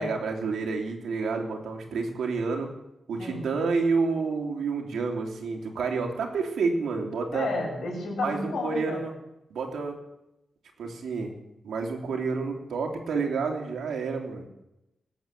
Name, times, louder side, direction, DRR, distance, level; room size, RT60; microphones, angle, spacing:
voice 1, 0.0-2.7 3.1-7.5 8.2-9.1 9.5-10.0 10.8-11.3 11.6-14.5, right 4 dB, 85° right, 2 dB, 2.9 m, -29 dB
voice 2, 7.3-9.0, left 2 dB, 65° left, 0 dB, 6.6 m, -31 dB
19.0 x 7.9 x 7.6 m, 0.89 s
wide cardioid pair, 150°, 0 cm